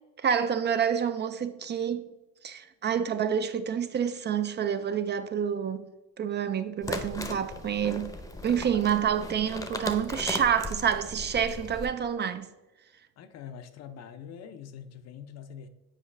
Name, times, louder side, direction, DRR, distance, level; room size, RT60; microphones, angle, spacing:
voice 1, 0.2-2.1 2.4-5.8 6.2-8.1 8.4-12.5, right 8 dB, 35° right, 0.4 m, -28 dB
sound 1, 6.8-11.9, left 1 dB, 10° left, 0.7 m, -37 dB
voice 2, 13.2-15.7, left 8 dB, 55° left, 0.6 m, -44 dB
7.5 x 4.7 x 3.2 m
cardioid pair, 95°, 31 cm